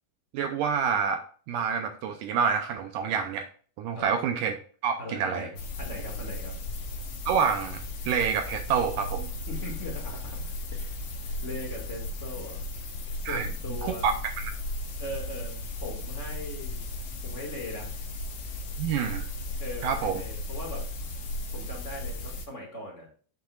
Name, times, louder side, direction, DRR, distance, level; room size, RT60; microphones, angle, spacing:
voice 1, 0.3-1.2 1.5-3.5 3.8-4.5 4.8-5.5 7.3-9.3 13.2-13.5 13.8-14.5 18.8-19.3 19.8-20.2, right 7 dB, 75° right, 6 dB, 2.0 m, -27 dB
voice 2, 5.0-5.5 5.8-6.7 9.5-12.7 13.2-14.1 15.0-16.9 17.2-18.0 19.6-20.9 21.5-23.1, left 1 dB, 30° left, -1 dB, 1.3 m, -40 dB
sound 1, 5.6-22.5, left 1 dB, 85° left, 1.3 m, -36 dB
8.7 x 7.8 x 2.4 m, 0.43 s
omnidirectional pair, 4.6 m